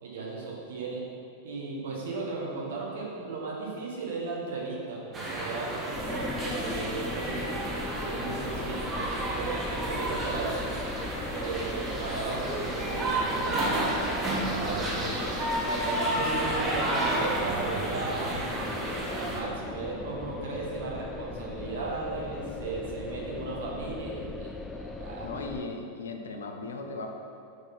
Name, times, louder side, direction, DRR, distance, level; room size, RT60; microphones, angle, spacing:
voice 1, 0.0-1.0 1.4-7.6 8.0-10.7 11.3-13.9 14.3-15.1 15.6-18.4 19.1-25.3, right 3 dB, 60° right, -3 dB, 1.4 m, -36 dB
sound 1, 5.1-19.4, right 1 dB, 25° right, 1.2 m, -31 dB
sound 2, 5.9-25.6, left 4 dB, 15° left, 0.3 m, -39 dB
voice 2, 25.2-27.1, left 3 dB, 65° left, 4 dB, 0.6 m, -37 dB
8.0 x 4.0 x 4.5 m, 2.5 s
figure-of-eight pair, 90°, 0 cm